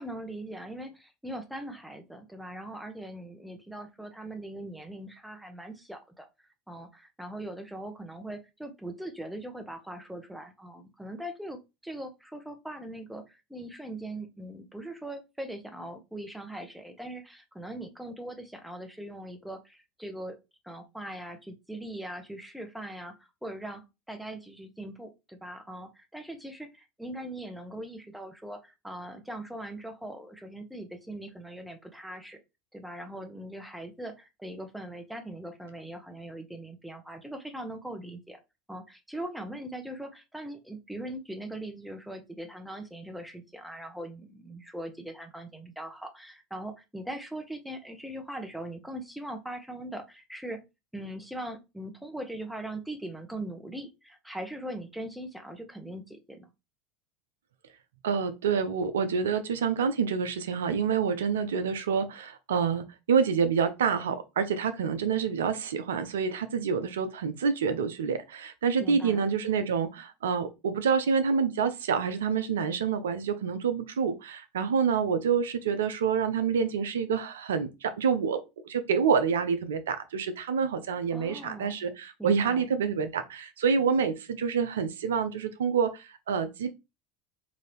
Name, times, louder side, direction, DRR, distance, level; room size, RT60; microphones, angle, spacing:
voice 1, 0.0-6.3 6.7-11.6 11.8-20.4 20.6-23.8 24.1-32.4 32.7-38.4 38.7-50.6 50.9-56.5 68.8-69.2 81.1-81.8 82.2-82.7, right 1 dB, ahead, 0.9 m, -40 dB
voice 2, 58.0-78.4 78.6-86.7, right 6 dB, 85° right, 0.5 m, -27 dB
3.8 x 2.7 x 3.3 m
hypercardioid pair, 85°, 0 cm